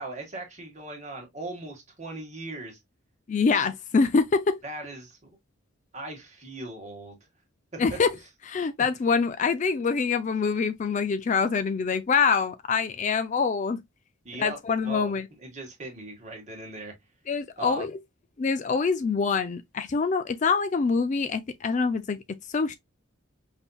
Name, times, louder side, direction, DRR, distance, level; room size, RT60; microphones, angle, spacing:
voice 1, 0.0-2.8 4.6-5.4 5.9-7.2 7.7-8.0 8.8-8.9 14.2-16.9 17.6-17.8, right 2 dB, 35° right, 1.6 m, -39 dB
voice 2, 3.3-4.6 7.8-8.1 8.5-13.8 14.4-15.3 17.3-17.9 18.4-22.2 22.5-22.8, left 5 dB, 35° left, 0.3 m, -25 dB
5.5 x 2.7 x 2.2 m
head